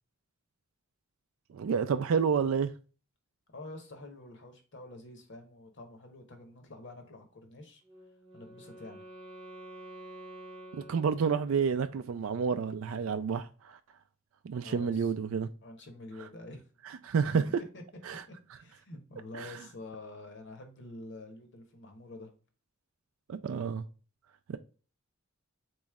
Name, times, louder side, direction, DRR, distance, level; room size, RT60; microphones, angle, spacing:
voice 1, 1.5-2.7 10.7-13.8 14.4-15.5 16.9-17.4 18.0-18.2 19.3-19.5 23.3-23.8 24.5-24.6, right 6 dB, 65° right, 0.4 m, -29 dB
voice 2, 3.5-7.8 8.3-9.0 14.6-15.1 15.6-16.6 17.6-17.8 18.6-22.3, left 2 dB, 55° left, 1.1 m, -47 dB
Wind instrument woodwind instrument, 7.8-11.8, right 1 dB, 30° right, 0.9 m, -49 dB
4.0 x 3.1 x 3.5 m
head